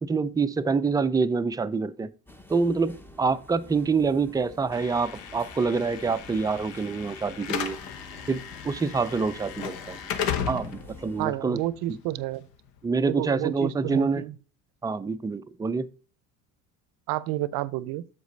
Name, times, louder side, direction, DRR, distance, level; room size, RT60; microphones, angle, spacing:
voice 1, 0.0-2.1 2.5-7.8 8.3-10.0 10.5-11.6 12.8-14.2 14.8-15.9, right 4 dB, 10° right, 0.3 m, -26 dB
sound 1, 2.3-11.3, left 1 dB, 5° left, 0.7 m, -49 dB
Slam / Alarm, 4.7-12.8, left 8 dB, 70° left, 1.1 m, -36 dB
voice 2, 11.2-12.5 13.1-14.4 17.1-18.0, right 15 dB, 65° right, 0.6 m, -30 dB
7.3 x 5.0 x 3.9 m
supercardioid pair, 90°, 37 cm